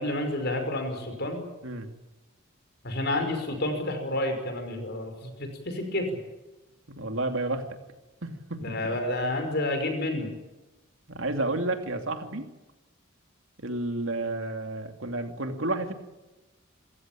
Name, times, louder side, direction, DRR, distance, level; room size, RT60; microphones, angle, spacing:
voice 1, 0.0-1.4 2.8-5.3 5.8-6.0 8.6-10.3, left 1 dB, 50° left, 6 dB, 5.5 m, -29 dB
voice 2, 6.9-7.7 8.2-8.6 11.1-12.5 13.6-15.9, right 2 dB, 65° right, 5 dB, 2.8 m, -31 dB
27.5 x 15.5 x 8.9 m, 1.0 s
head